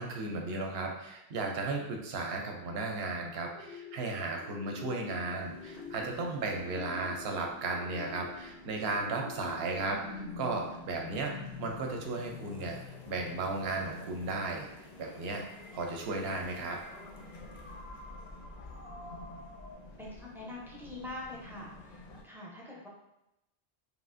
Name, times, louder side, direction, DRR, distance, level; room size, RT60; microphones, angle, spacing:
voice 1, 0.0-12.8 13.1-14.7 15.0-15.4 15.7-16.8, right 3 dB, 75° right, 2 dB, 0.8 m, -35 dB
sound 1, 3.5-19.7, left 5 dB, 80° left, 0.9 m, -48 dB
sound 2, 5.4-22.2, left 2 dB, 55° left, 0.5 m, -51 dB
voice 2, 20.0-22.9, left 2 dB, 5° right, -5 dB, 0.3 m, -44 dB
3.3 x 2.4 x 2.5 m, 0.88 s
omnidirectional pair, 1.1 m